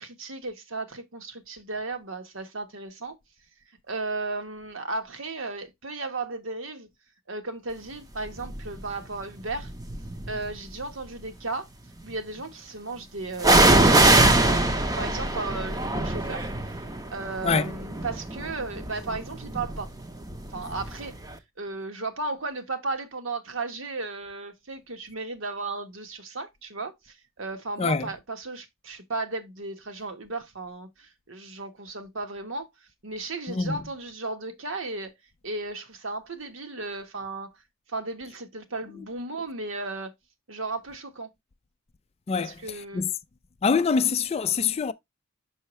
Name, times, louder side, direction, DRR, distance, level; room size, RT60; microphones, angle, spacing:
voice 1, 0.0-3.2 3.8-6.9 7.3-9.7 10.3-11.7 12.0-19.9 20.5-21.1 21.6-35.1 35.4-37.6 37.9-40.1 40.5-41.3 42.4-43.0, right 3 dB, 65° right, 1.2 m, -35 dB
sound 1, 8.4-8.8 9.6-10.5 13.4-21.0 21.3-21.4, right 2 dB, 15° right, 0.7 m, -23 dB
voice 2, 27.8-28.1 33.5-33.8 42.3-43.1 43.6-44.9, left 5 dB, 30° left, 0.3 m, -25 dB
5.7 x 5.6 x 3.0 m
head